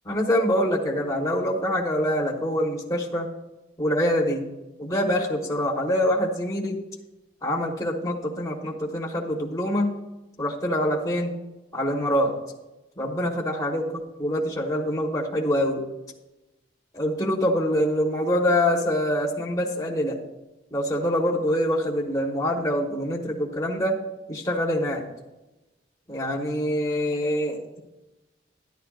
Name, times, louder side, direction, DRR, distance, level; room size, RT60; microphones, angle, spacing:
voice 1, 0.0-3.3 3.8-4.5 4.8-6.8 7.4-9.9 10.4-11.3 11.7-12.4 13.0-13.9 14.2-15.8 16.9-20.2 20.7-24.0 24.3-25.0 26.1-27.8, equal, 15° left, -2 dB, 1.3 m, -25 dB
12.5 x 11.0 x 2.5 m, 1.0 s
head